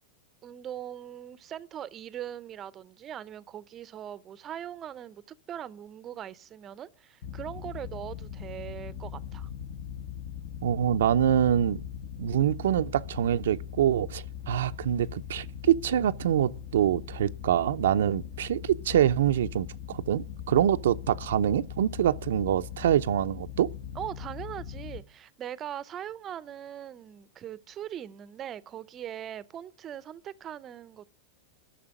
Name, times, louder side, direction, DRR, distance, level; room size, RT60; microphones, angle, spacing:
voice 1, 0.4-5.2 5.5-9.5 23.9-31.1, right 10 dB, 25° right, 0.7 m, -40 dB
sound 1, 7.2-25.0, left 9 dB, 50° left, 1.3 m, -40 dB
voice 2, 10.6-11.8 12.2-23.7, right 10 dB, 85° right, 0.6 m, -25 dB
11.0 x 6.7 x 9.0 m
supercardioid pair, 145°, 0 cm